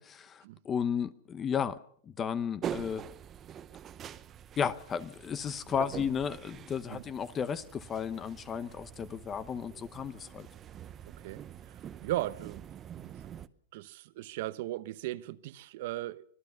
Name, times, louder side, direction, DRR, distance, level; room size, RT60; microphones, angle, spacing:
voice 1, 0.0-1.8 2.1-3.0 4.6-10.5, left 7 dB, 20° left, 0.8 m, -34 dB
sound 1, 2.6-13.5, right 9 dB, 20° right, 0.8 m, -45 dB
voice 2, 12.0-12.6 13.0-13.4 13.7-16.2, right 15 dB, 55° right, 1.0 m, -37 dB
25.5 x 17.0 x 6.7 m
supercardioid pair, 155°, 0 cm